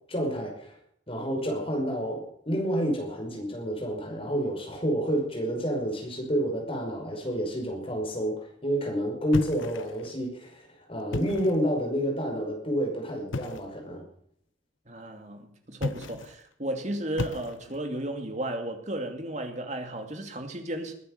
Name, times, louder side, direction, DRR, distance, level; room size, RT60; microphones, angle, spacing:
voice 1, 0.1-0.8 1.1-14.0, equal, 30° left, 5.5 m, -29 dB
sound 1, 9.3-10.1 11.0-11.7 13.3-13.8 15.7-16.4 17.2-17.9, left 2 dB, 85° left, 0.8 m, -34 dB
voice 2, 14.9-20.9, right 1 dB, 35° right, 2.6 m, -34 dB
21.0 x 10.0 x 6.7 m
head